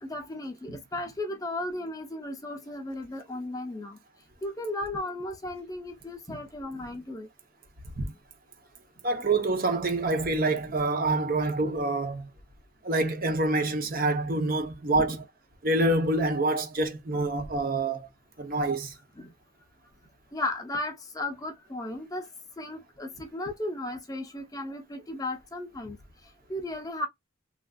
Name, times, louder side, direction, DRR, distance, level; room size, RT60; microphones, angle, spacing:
voice 1, 0.0-4.0 4.4-7.3 8.1-8.2 15.0-15.2 19.2-19.3 20.3-22.3 22.6-26.0 26.5-27.1, left 1 dB, 15° left, 0.6 m, -35 dB
voice 2, 9.0-12.3 12.8-15.2 15.6-18.1 18.4-19.0, right 2 dB, 45° right, 0.8 m, -26 dB
3.4 x 2.5 x 2.3 m
head